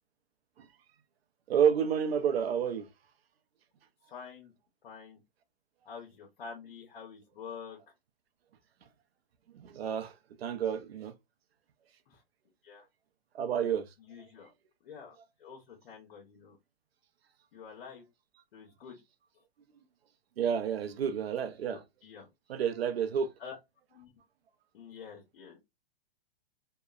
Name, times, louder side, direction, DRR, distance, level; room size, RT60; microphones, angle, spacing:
voice 1, 1.5-2.9 9.5-11.1 13.3-14.3 20.4-21.8 22.5-23.3, right 8 dB, 90° right, 0.6 m, -30 dB
voice 2, 4.1-4.5 4.8-5.2 5.8-7.8 12.1-12.2 12.6-12.9 14.0-14.5 14.8-16.6 17.5-18.0 18.5-19.0 21.7-22.3 23.4-23.5 23.9-24.1 24.7-25.6, left 6 dB, 70° left, 0.9 m, -47 dB
2.9 x 2.1 x 2.3 m
hypercardioid pair, 150°, 30 cm